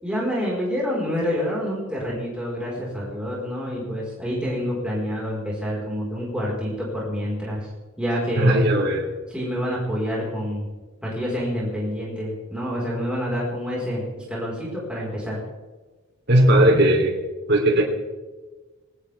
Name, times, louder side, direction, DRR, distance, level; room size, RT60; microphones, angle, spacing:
voice 1, 0.0-7.7 8.0-8.6 9.3-10.7 11.0-15.4, equal, 5° right, -5 dB, 4.8 m, -27 dB
voice 2, 8.4-9.2 16.3-17.1 17.5-17.8, right 1 dB, 50° right, 1 dB, 3.3 m, -17 dB
20.0 x 18.5 x 3.6 m, 1.2 s
head